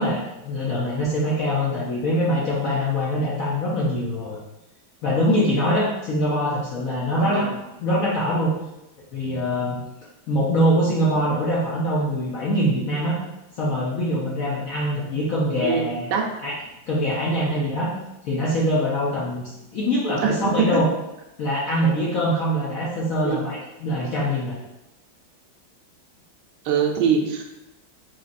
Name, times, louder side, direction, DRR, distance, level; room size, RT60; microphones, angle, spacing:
voice 1, 0.0-4.4 5.0-7.5 7.8-8.5 9.1-9.8 10.3-13.2 13.6-16.1 16.4-16.5 16.9-17.9 18.2-20.9 21.4-24.6, equal, 70° left, -6 dB, 0.8 m, -23 dB
voice 2, 7.1-7.5 15.6-16.3 20.2-20.8 23.2-23.4 26.6-27.5, right 6 dB, 70° right, 1 dB, 1.1 m, -23 dB
4.0 x 3.0 x 2.5 m, 0.93 s
omnidirectional pair, 2.2 m